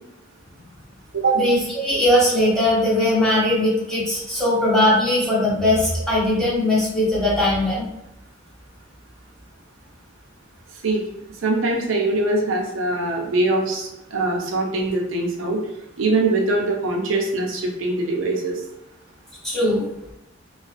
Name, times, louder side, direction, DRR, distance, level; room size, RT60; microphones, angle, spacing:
voice 1, 1.3-7.9 19.4-19.9, left 1 dB, ahead, -9 dB, 1.0 m, -19 dB
voice 2, 11.4-15.6 16.0-18.6, right 2 dB, 80° right, -1 dB, 0.5 m, -22 dB
2.4 x 2.3 x 2.4 m, 0.88 s
head